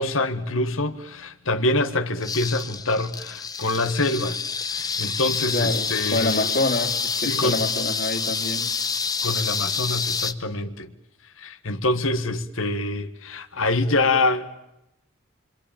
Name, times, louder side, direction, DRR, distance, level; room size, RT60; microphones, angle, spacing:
voice 1, 0.0-4.4 4.7-6.5 7.2-7.6 9.2-10.9 11.4-14.5, left 2 dB, 85° left, 1.6 m, -25 dB
sound 1, 2.2-10.3, left 5 dB, 20° left, 1.0 m, -27 dB
voice 2, 5.5-8.7, left 2 dB, 45° left, 3.0 m, -26 dB
26.5 x 25.0 x 8.9 m
head